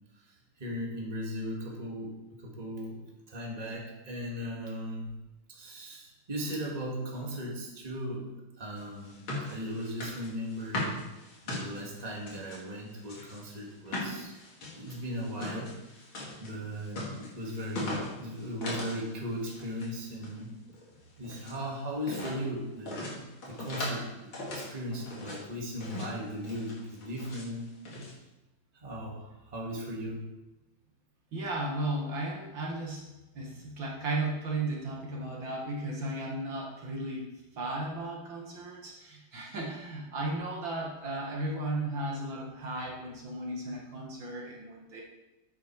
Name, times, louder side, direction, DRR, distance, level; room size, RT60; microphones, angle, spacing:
voice 1, 0.6-3.0 3.3-5.1 5.5-9.2 9.4-11.0 11.4-14.3 14.8-15.7 16.4-20.5 21.2-27.7 28.7-30.2, equal, 20° right, -3 dB, 1.9 m, -37 dB
sound 1, 8.8-12.6 13.0-19.0 19.3-19.9 20.2-21.6 22.0-22.4 22.9-24.0 24.3-25.4 25.8-26.2 26.4-27.5 27.8-28.1, left 2 dB, 70° left, 3.1 m, -39 dB
voice 2, 31.3-45.0, right 2 dB, 60° right, -2 dB, 2.3 m, -35 dB
9.6 x 8.2 x 4.7 m, 1.0 s
omnidirectional pair, 2.4 m